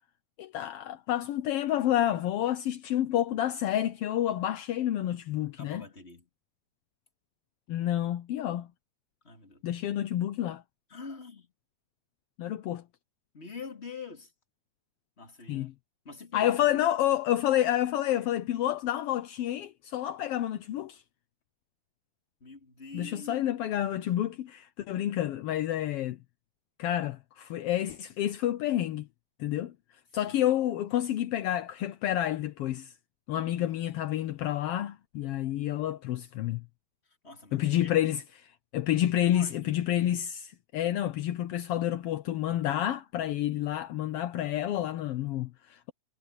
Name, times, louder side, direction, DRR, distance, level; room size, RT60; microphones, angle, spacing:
voice 1, 0.4-5.8 7.7-8.7 9.6-10.6 12.4-12.8 15.5-15.7 16.3-21.0 22.9-26.2 26.8-29.1 29.4-29.7 30.1-32.9 33.3-36.6 37.5-45.9, left 12 dB, 75° left, 1.4 m, -29 dB
voice 2, 5.6-6.3 9.2-9.6 10.9-11.5 13.3-14.3 15.2-15.7 16.0-16.8 22.4-23.5 30.2-30.3 33.3-33.7 37.2-37.9 39.3-39.9, left 4 dB, 20° left, 3.0 m, -45 dB
omnidirectional pair, 3.4 m